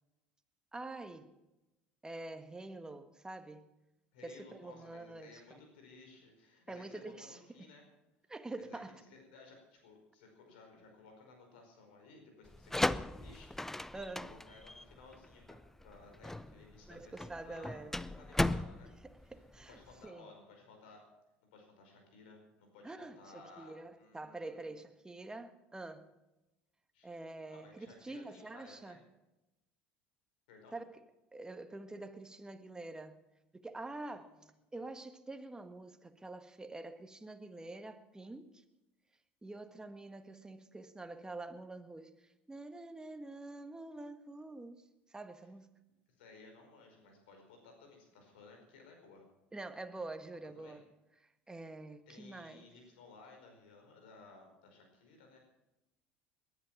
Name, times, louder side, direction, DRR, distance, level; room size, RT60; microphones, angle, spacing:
voice 1, 0.7-1.3 2.0-3.7 4.2-5.6 6.7-7.7 8.3-9.0 13.9-14.3 16.9-18.0 19.0-20.3 22.8-26.1 27.0-29.0 30.7-31.0 31.3-33.2 33.5-34.3 34.7-38.6 39.4-44.8 45.1-45.8 49.5-50.8 51.2-52.7, right 2 dB, 15° right, 1.5 m, -46 dB
voice 2, 4.1-7.8 8.6-8.8 9.1-13.9 14.2-15.6 15.8-17.2 17.4-17.8 18.2-19.4 19.7-21.0 21.5-24.7 26.9-27.2 27.5-29.0 30.5-30.7 34.1-34.4 46.2-49.3 50.5-50.8 52.1-55.4, left 3 dB, 80° left, 5.0 m, -58 dB
sound 1, 12.5-20.0, left 1 dB, 5° left, 0.5 m, -37 dB
20.0 x 11.0 x 5.9 m
hypercardioid pair, 75°, 6 cm